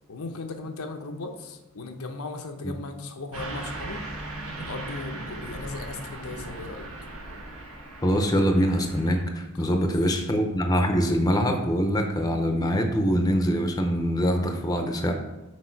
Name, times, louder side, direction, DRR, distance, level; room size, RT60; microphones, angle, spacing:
voice 1, 0.1-4.0 4.6-6.9 9.6-9.9, left 3 dB, 80° left, 5 dB, 0.8 m, -37 dB
Car passing by / Truck, 3.3-9.2, right 2 dB, 75° right, 1.4 m, -38 dB
voice 2, 8.0-15.1, equal, 15° left, 4 dB, 0.6 m, -24 dB
6.2 x 4.7 x 4.5 m, 1.1 s
head